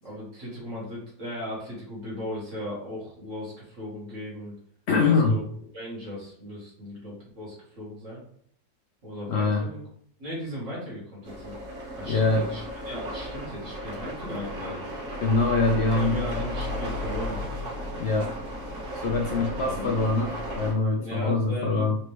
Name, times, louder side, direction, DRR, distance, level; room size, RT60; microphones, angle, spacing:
voice 1, 0.0-4.6 5.0-5.4 5.7-8.2 9.0-9.8 10.2-11.6 12.0-14.9 15.7-17.4 19.3-19.9 21.0-21.9, equal, 50° right, -6 dB, 2.2 m, -37 dB
voice 2, 4.9-5.4 9.3-9.7 12.1-12.5 15.2-16.2 18.0-18.3 19.0-22.0, left 3 dB, 65° left, 1 dB, 0.6 m, -24 dB
sound 1, 11.2-20.7, left 1 dB, 75° right, 2.0 m, -34 dB
4.3 x 3.0 x 3.3 m, 0.63 s
omnidirectional pair, 1.7 m